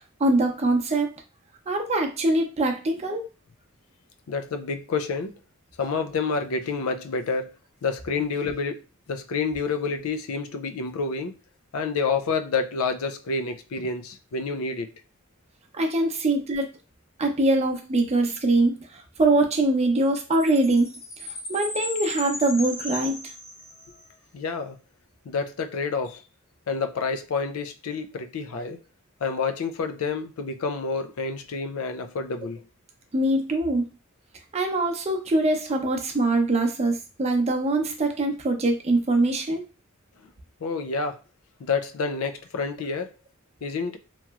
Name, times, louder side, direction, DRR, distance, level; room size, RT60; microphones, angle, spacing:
voice 1, 0.2-1.1 1.7-3.2 15.7-16.7 17.2-21.0 21.5-23.2 33.1-33.8 34.5-39.6, right 2 dB, 30° right, 0.6 m, -23 dB
voice 2, 4.3-5.4 5.8-7.5 7.8-8.8 9.1-11.4 11.7-14.9 24.3-24.8 25.3-26.2 26.7-28.8 29.2-32.6 40.2-40.3 40.6-41.2 41.6-43.1 43.6-44.0, left 4 dB, 90° left, 0.4 m, -28 dB
Chime, 20.3-24.0, left 2 dB, 60° left, 1.4 m, -36 dB
3.0 x 2.9 x 2.3 m
head